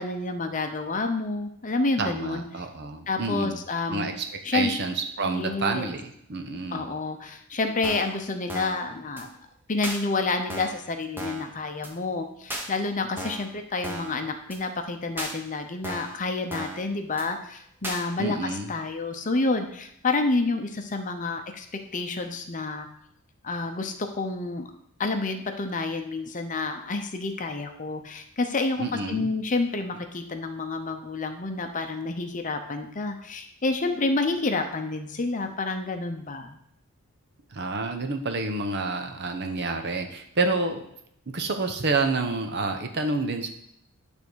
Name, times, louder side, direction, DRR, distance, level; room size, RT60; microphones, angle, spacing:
voice 1, 0.0-2.7 3.1-4.1 4.4-4.7 5.2-5.9 6.7-9.3 9.7-21.7 21.9-22.9 23.4-24.7 25.0-36.6, left 3 dB, 35° left, 6 dB, 0.7 m, -29 dB
voice 2, 2.0-3.6 3.9-4.2 4.5-6.9 18.2-18.7 28.8-29.3 37.5-40.8 41.3-43.5, right 3 dB, 50° right, 5 dB, 0.9 m, -28 dB
sound 1, 7.8-8.2 8.5-8.8 9.2-9.3 9.8-10.0 10.5-10.8 11.2-11.5 11.8-11.9 12.5-12.7 13.2-13.5 13.8-14.2 14.5-14.6 15.2-15.3 15.8-16.2 16.5-16.8 17.2-17.3 17.8-18.0, right 1 dB, 10° right, 1.0 m, -35 dB
9.4 x 3.5 x 6.3 m, 0.74 s
head